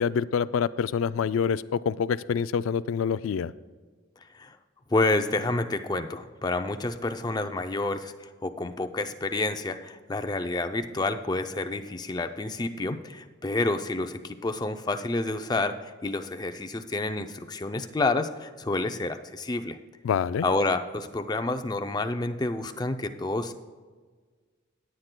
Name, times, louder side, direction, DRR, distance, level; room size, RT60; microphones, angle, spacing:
voice 1, 0.0-3.5 20.0-20.5, left 7 dB, 85° left, 16 dB, 0.3 m, -26 dB
voice 2, 4.9-15.8 16.0-19.8 20.4-23.5, left 2 dB, 20° left, 7 dB, 0.4 m, -29 dB
17.5 x 8.9 x 2.2 m, 1.5 s
head